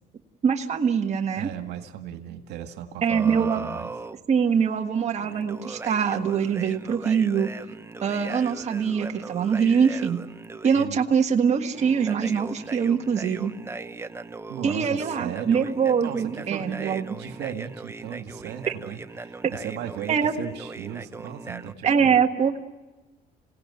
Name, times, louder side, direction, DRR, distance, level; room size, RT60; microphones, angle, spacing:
voice 1, 0.4-1.5 3.0-3.6 4.3-7.5 8.0-10.2 10.6-13.5 14.6-17.1 20.1-20.3 21.8-22.6, right 6 dB, 40° right, 3 dB, 1.6 m, -23 dB
voice 2, 1.4-3.9 10.8-11.0 14.5-15.7 16.0-22.2, right 10 dB, 80° right, 6 dB, 2.0 m, -37 dB
sound 1, 3.1-4.2 5.2-10.9 11.7-21.7, right 3 dB, 15° right, 0.8 m, -39 dB
28.0 x 17.5 x 9.8 m, 1.1 s
cardioid pair, 110°, 17 cm